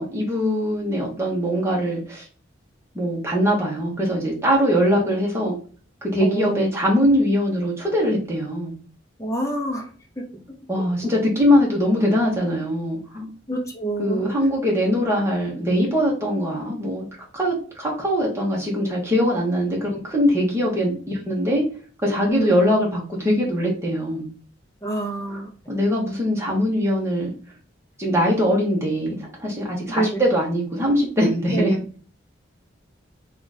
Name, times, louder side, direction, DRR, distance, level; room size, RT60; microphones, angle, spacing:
voice 1, 0.0-2.3 2.9-5.5 6.0-8.7 10.7-13.3 14.0-17.0 17.3-21.6 22.0-24.3 25.7-27.3 28.0-31.7, equal, 15° right, -3 dB, 1.1 m, -22 dB
voice 2, 6.2-6.7 9.2-9.9 10.2-10.4 10.8-11.1 13.5-14.3 22.3-22.6 24.8-25.5 29.9-30.2 31.5-31.8, right 2 dB, 15° left, 0 dB, 0.8 m, -27 dB
3.0 x 2.4 x 4.0 m, 0.41 s
head